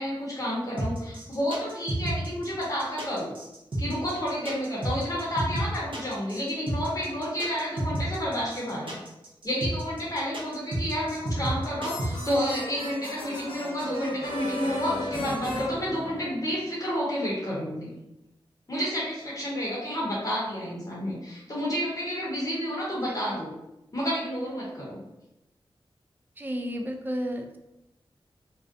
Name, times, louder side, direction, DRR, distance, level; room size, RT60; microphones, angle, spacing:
voice 1, 0.0-3.3 3.8-9.0 9.4-17.9 18.7-23.5 23.9-25.0, equal, 35° left, -6 dB, 0.8 m, -30 dB
sound 1, 0.8-12.5, right 1 dB, 65° right, 0.7 m, -31 dB
sound 2, 11.3-16.6, left 1 dB, 70° left, 0.8 m, -36 dB
voice 2, 26.4-27.6, equal, 20° right, 3 dB, 0.3 m, -32 dB
2.4 x 2.1 x 2.5 m, 0.90 s
wide cardioid pair, 70°, 9 cm